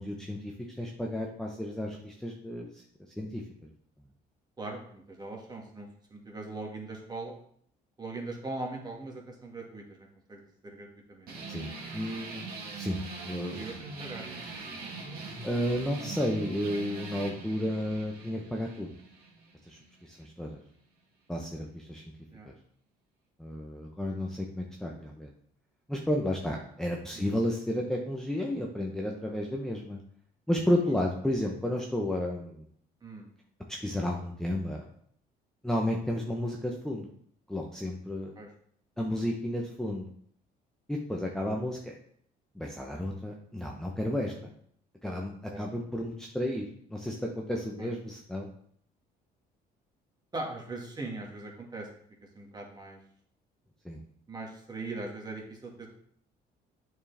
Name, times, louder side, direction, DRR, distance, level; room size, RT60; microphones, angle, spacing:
voice 1, 0.0-2.8 3.2-3.4 11.5-12.5 12.7-13.7 15.4-18.9 19.7-20.6 21.3-22.1 22.4-22.5 23.4-25.3 25.9-30.0 30.5-32.6 33.7-34.8 35.6-37.1 37.5-38.4 39.0-40.1 40.9-41.9 42.5-44.5 45.0-48.5 53.8-54.0, left 1 dB, 5° left, 0 dB, 0.8 m, -32 dB
voice 2, 4.6-7.3 8.0-11.6 13.5-14.4 22.3-22.5 27.1-27.4 33.0-33.3 38.4-38.5 39.0-39.2 45.5-45.6 47.8-47.9 50.3-51.9 52.3-53.0 54.3-55.9, right 2 dB, 25° right, 0 dB, 1.8 m, -40 dB
sound 1, 11.3-20.3, right 3 dB, 60° right, 2.0 m, -42 dB
8.4 x 4.8 x 3.4 m, 0.64 s
cardioid pair, 110°, 17 cm